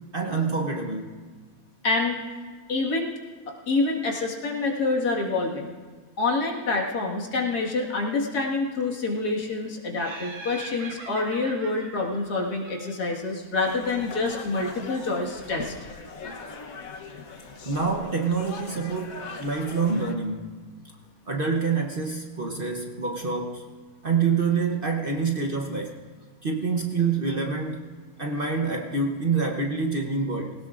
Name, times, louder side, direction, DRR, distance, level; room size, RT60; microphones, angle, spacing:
voice 1, 0.1-1.1 17.7-20.5 21.3-23.6 24.0-25.9 26.4-27.9 28.2-30.5, right 4 dB, 40° right, 1 dB, 1.0 m, -26 dB
voice 2, 1.8-2.2 2.7-3.1 3.7-5.7 6.2-15.7, left 3 dB, 85° left, -1 dB, 2.3 m, -27 dB
Laughter, 10.0-13.3, right 3 dB, 75° right, 1.9 m, -42 dB
sound 1, 13.6-20.1, left 4 dB, 65° left, 1.4 m, -40 dB
20.0 x 18.0 x 2.5 m, 1.5 s
omnidirectional pair, 1.6 m